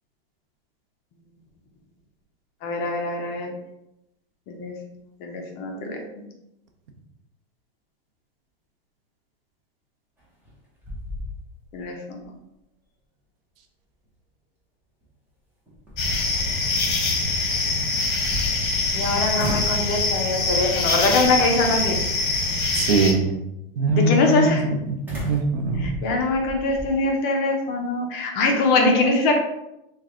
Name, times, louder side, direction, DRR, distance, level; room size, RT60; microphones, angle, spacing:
voice 1, 2.6-3.5 4.5-4.7 5.2-6.0 11.7-12.2 18.9-22.0 22.3-22.4 23.9-24.6 25.8-29.4, left 2 dB, 35° left, 2 dB, 0.6 m, -23 dB
sound 1, 10.2-10.5 10.8-11.8 12.2-12.3 15.0-15.1 15.7-16.6 17.9-19.0 19.4-19.9 20.4-20.8 21.6-22.1 25.1-26.9, left 1 dB, 5° right, 0.8 m, -34 dB
sound 2, 16.0-23.1, left 3 dB, 55° left, 1.0 m, -24 dB
voice 2, 22.7-23.3 23.8-24.6 24.9-25.9, right 2 dB, 70° right, 4 dB, 0.8 m, -22 dB
3.2 x 2.3 x 3.6 m, 0.87 s
supercardioid pair, 150°, 30 cm